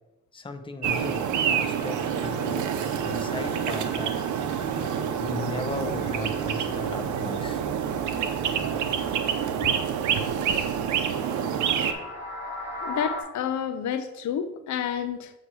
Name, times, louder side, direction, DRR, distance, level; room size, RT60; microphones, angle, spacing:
voice 1, 0.3-2.7 3.0-4.2 5.2-7.6, left 3 dB, 15° left, 6 dB, 0.7 m, -36 dB
sound 1, 0.8-13.2, left 2 dB, 10° right, 2.7 m, -42 dB
sound 2, 0.8-11.9, right 8 dB, 75° right, 0.7 m, -27 dB
voice 2, 12.8-15.3, left 8 dB, 70° left, 10 dB, 0.6 m, -29 dB
8.0 x 3.0 x 6.1 m, 0.96 s
cardioid pair, 90°, 30 cm